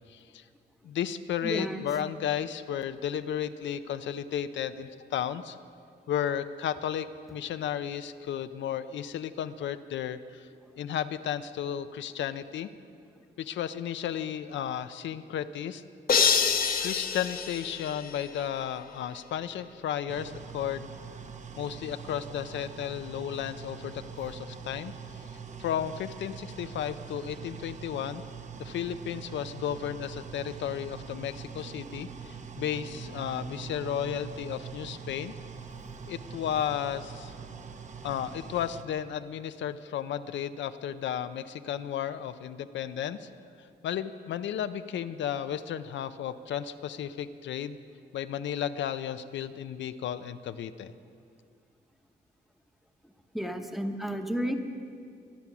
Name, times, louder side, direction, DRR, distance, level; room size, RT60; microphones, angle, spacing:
voice 1, 0.1-0.4 0.8-5.6 6.1-10.5 10.8-12.7 13.4-15.8 16.8-20.9 21.6-24.9 25.3-28.2 28.6-35.3 36.1-37.3 38.0-43.3 43.8-47.8 48.1-50.9, left 9 dB, 85° left, 11 dB, 0.6 m, -33 dB
voice 2, 1.4-1.8 53.3-54.5, equal, ahead, 5 dB, 1.0 m, -31 dB
sound 1, 16.1-18.4, left 6 dB, 50° left, 1.0 m, -26 dB
sound 2, 20.1-38.8, right 6 dB, 40° right, 0.9 m, -43 dB
23.5 x 8.3 x 6.0 m, 2.3 s
cardioid pair, 115°, 19 cm